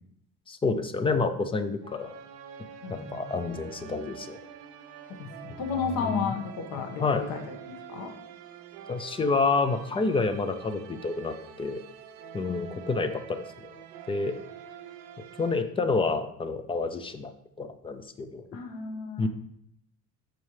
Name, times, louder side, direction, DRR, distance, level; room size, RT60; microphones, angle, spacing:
voice 1, 0.5-2.1 2.9-4.4 5.5-5.6 6.0-6.4 7.0-7.2 8.9-11.8 12.3-13.7 14.1-14.3 15.4-17.3 17.6-18.4 19.2-19.3, left 3 dB, 15° left, 9 dB, 0.4 m, -28 dB
sound 1, 1.8-15.6, right 8 dB, 90° right, 1.0 m, -46 dB
voice 2, 2.8-3.3 5.2-7.4 7.7-8.1 12.5-12.6 18.5-19.3, left 5 dB, 75° left, 2 dB, 1.5 m, -33 dB
12.5 x 4.5 x 3.2 m, 0.71 s
cardioid pair, 165°, 35 cm